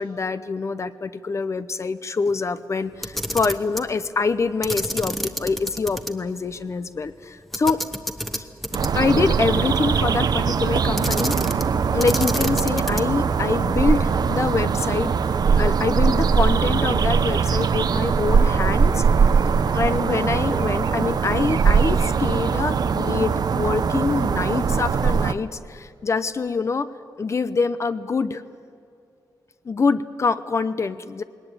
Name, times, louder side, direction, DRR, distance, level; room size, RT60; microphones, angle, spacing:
voice 1, 0.0-7.8 8.3-8.5 8.9-11.6 11.9-15.1 15.6-19.0 19.7-26.9 27.2-28.4 29.6-31.2, left 4 dB, 40° left, 13 dB, 0.7 m, -25 dB
Camera, 2.9-3.9 4.6-6.1 6.4-6.5 7.5-9.1 11.0-11.7 12.0-13.2, equal, ahead, 1.1 m, -29 dB
sound 1, 8.7-25.3, right 6 dB, 65° right, 0.8 m, -21 dB
20.5 x 19.0 x 9.0 m, 2.4 s
wide cardioid pair, 140°, 7 cm